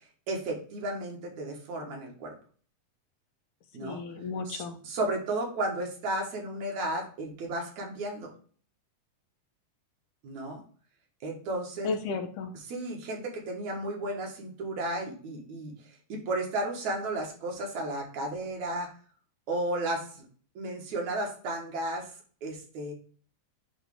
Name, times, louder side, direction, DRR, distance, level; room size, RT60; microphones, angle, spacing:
voice 1, 0.3-2.3 3.7-4.0 4.5-8.3 10.2-10.6 11.2-11.9 12.7-15.7 16.1-18.9 19.5-20.3 20.6-22.1 22.4-22.9, right 1 dB, 70° right, 0 dB, 2.8 m, -33 dB
voice 2, 3.8-4.8 11.8-12.5, left 4 dB, 80° left, 5 dB, 2.5 m, -33 dB
9.9 x 3.3 x 3.5 m, 0.44 s
omnidirectional pair, 3.6 m